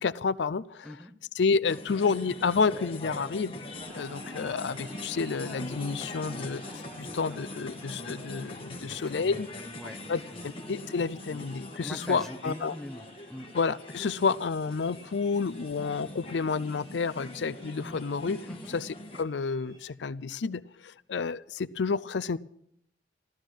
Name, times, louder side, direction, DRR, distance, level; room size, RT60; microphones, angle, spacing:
voice 1, 0.0-0.6 1.4-3.5 3.9-6.6 7.0-9.5 10.1-10.2 10.7-12.7 13.6-18.4 18.7-18.9 19.2-20.6 21.1-22.4, left 5 dB, 80° left, 16 dB, 0.5 m, -29 dB
sound 1, 1.7-19.2, left 2 dB, 30° left, 1.4 m, -43 dB
sound 2, 3.8-19.9, right 1 dB, 30° right, 2.7 m, -52 dB
voice 2, 7.0-7.4 8.8-10.4 11.8-13.5 18.5-18.8, left 1 dB, ahead, 4 dB, 1.0 m, -43 dB
14.5 x 13.0 x 6.3 m, 0.72 s
head